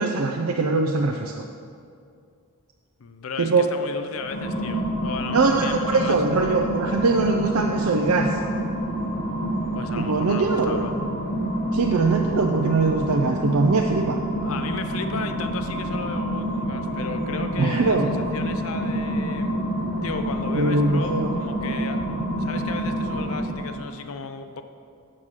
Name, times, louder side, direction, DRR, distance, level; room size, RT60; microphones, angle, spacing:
voice 1, 0.0-1.4 3.4-3.7 5.3-8.4 10.0-10.8 11.7-14.2 17.6-18.1 20.5-21.3, right 3 dB, 90° right, 2 dB, 0.6 m, -22 dB
voice 2, 3.0-6.2 9.7-11.0 14.4-19.6 20.0-22.1 22.4-24.6, left 5 dB, 70° left, 8 dB, 0.5 m, -35 dB
sound 1, 4.1-23.9, equal, 50° left, 1.5 m, -28 dB
7.6 x 6.4 x 7.4 m, 2.3 s
head